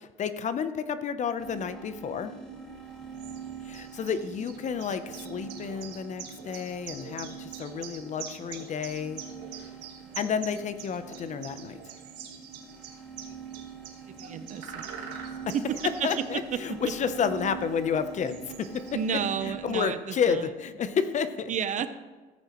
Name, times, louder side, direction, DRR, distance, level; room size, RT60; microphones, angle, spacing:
voice 1, 0.2-2.3 3.7-9.2 10.2-11.8 15.5-15.6 15.8-19.0 19.4-21.5, left 7 dB, 45° left, 11 dB, 0.7 m, -30 dB
sound 1, 1.4-19.8, right 6 dB, 5° left, 2.5 m, -44 dB
sound 2, 2.8-19.3, right 7 dB, 85° right, 1.4 m, -46 dB
voice 2, 14.0-15.2 15.5-16.1 16.5-16.6 18.9-20.5 21.5-21.9, right 7 dB, 45° right, 11 dB, 0.7 m, -32 dB
14.0 x 8.9 x 3.1 m, 1.4 s
cardioid pair, 110°, 17 cm